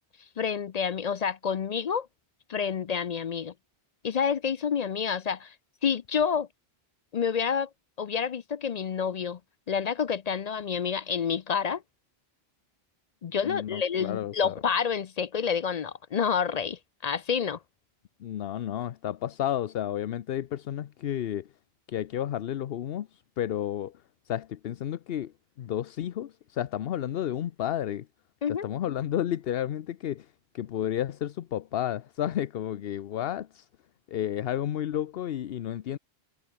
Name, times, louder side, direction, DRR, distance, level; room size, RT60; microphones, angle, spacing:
voice 1, 0.4-2.1 2.5-3.5 4.0-5.5 5.8-6.5 7.1-7.7 8.0-9.4 9.7-11.8 13.2-17.6 28.4-28.7, left 6 dB, 50° left, 0.5 m, -28 dB
voice 2, 13.4-14.5 18.2-21.5 21.9-23.9 24.3-25.3 25.6-28.1 28.5-30.3 30.5-33.7 34.1-36.0, left 11 dB, 70° left, 0.9 m, -31 dB
omnidirectional pair, 1.0 m